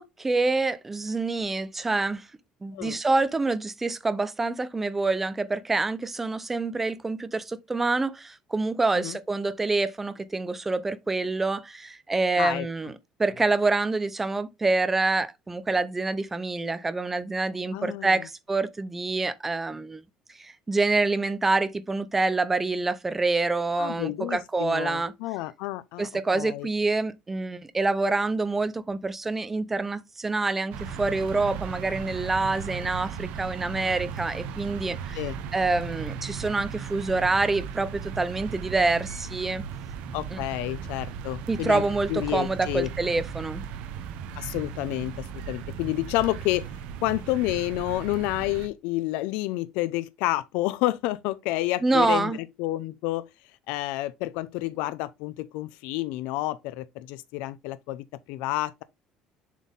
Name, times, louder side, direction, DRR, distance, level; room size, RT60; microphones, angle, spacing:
voice 1, 0.0-2.3 2.6-12.9 13.2-20.0 20.4-25.1 26.0-35.2 35.5-39.6 40.3-40.4 41.5-43.6 51.8-52.4, right 3 dB, 10° right, 0.6 m, -26 dB
voice 2, 17.7-18.1 23.8-26.7 35.1-35.4 40.1-41.8 42.1-42.9 44.3-46.6 47.0-53.3 53.7-58.8, left 17 dB, 85° left, 0.5 m, -29 dB
sound 1, 30.7-48.7, right 7 dB, 70° right, 1.1 m, -37 dB
7.3 x 4.2 x 3.6 m
cardioid pair, 170°, 2 cm